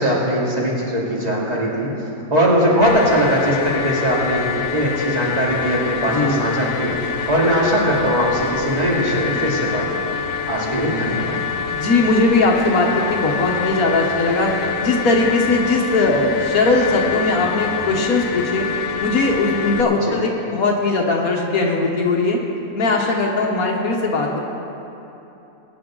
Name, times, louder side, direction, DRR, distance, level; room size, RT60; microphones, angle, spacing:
voice 1, 0.0-1.9 2.3-4.5 4.7-6.9 7.3-10.2 10.5-11.4 20.0-20.1, equal, 25° right, -5 dB, 2.6 m, -20 dB
sound 1, 2.8-19.8, left 6 dB, 55° left, 0.7 m, -26 dB
voice 2, 6.1-6.4 11.7-14.5 14.8-18.7 19.0-22.4 22.7-24.4, left 3 dB, 75° left, -1 dB, 1.5 m, -19 dB
21.0 x 9.8 x 3.8 m, 3.0 s
omnidirectional pair, 1.5 m